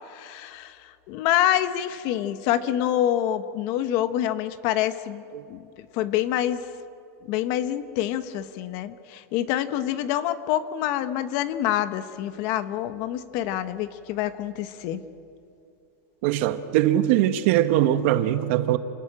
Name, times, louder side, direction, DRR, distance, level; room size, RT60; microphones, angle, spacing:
voice 1, 0.1-5.2 5.5-6.6 7.3-15.0, left 12 dB, 40° left, 1.0 m, -26 dB
voice 2, 16.2-18.8, right 12 dB, 45° right, 1.2 m, -21 dB
28.0 x 19.5 x 8.9 m
supercardioid pair, 175°, 9 cm